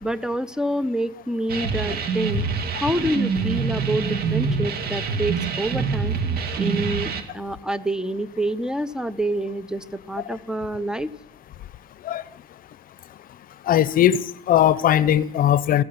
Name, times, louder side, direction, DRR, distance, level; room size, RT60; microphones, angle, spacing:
voice 1, 0.0-2.4 2.8-6.2 6.6-11.1, right 1 dB, 5° right, 0.9 m, -27 dB
sound 1, 1.5-7.2, right 5 dB, 65° right, 2.2 m, -25 dB
voice 2, 13.7-15.8, left 11 dB, 60° left, 0.7 m, -19 dB
15.5 x 14.5 x 5.9 m
cardioid pair, 110°, 17 cm